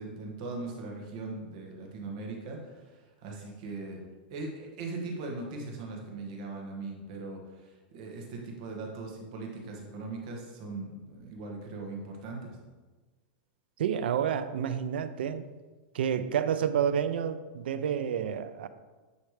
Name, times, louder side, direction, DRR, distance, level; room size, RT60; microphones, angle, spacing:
voice 1, 0.0-4.0 4.3-12.6, right 3 dB, 40° right, 1 dB, 1.5 m, -40 dB
voice 2, 13.8-15.5 15.9-18.7, right 8 dB, 80° right, 12 dB, 0.5 m, -29 dB
9.5 x 3.3 x 4.9 m, 1.3 s
supercardioid pair, 175°, 5 cm